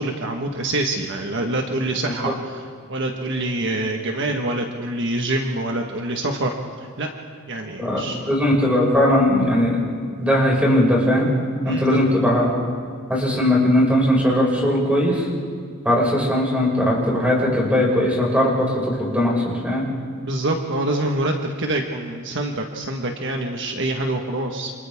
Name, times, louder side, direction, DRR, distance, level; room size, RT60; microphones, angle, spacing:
voice 1, 0.0-2.6 2.9-6.5 7.0-7.1 7.5-8.2 11.6-12.0 20.2-24.7, right 2 dB, 55° right, 2 dB, 1.5 m, -25 dB
voice 2, 1.9-2.3 7.8-9.8 10.2-11.3 11.6-12.5 13.1-15.3 15.8-19.9, left 1 dB, 5° right, -3 dB, 5.9 m, -19 dB
29.0 x 27.5 x 3.7 m, 2.2 s
head